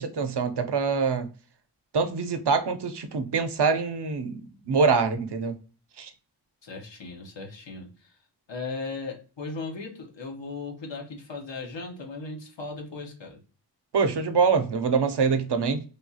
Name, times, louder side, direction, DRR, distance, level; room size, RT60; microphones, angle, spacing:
voice 1, 0.0-1.3 1.9-5.6 6.0-6.1 13.9-15.8, right 5 dB, 70° right, 0.6 m, -25 dB
voice 2, 6.6-8.1 8.5-13.4, left 3 dB, 85° left, 0.9 m, -37 dB
3.3 x 2.3 x 2.7 m
wide cardioid pair, 70°, 43 cm